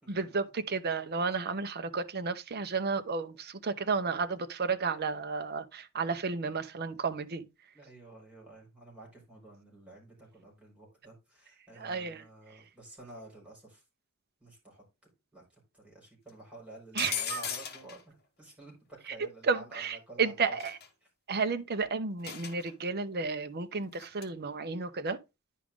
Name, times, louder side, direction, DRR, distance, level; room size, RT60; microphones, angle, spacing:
voice 1, 0.1-7.5 11.8-12.2 16.9-17.4 19.5-20.8 21.3-25.2, right 4 dB, 45° right, 0.7 m, -32 dB
voice 2, 7.7-13.8 14.4-14.8 15.3-15.4 15.7-20.6, right 1 dB, 5° right, 4.8 m, -51 dB
sound 1, 17.0-18.0 20.6-20.9 22.2-22.7 23.9-24.2, left 9 dB, 45° left, 1.3 m, -37 dB
10.0 x 5.0 x 3.6 m
head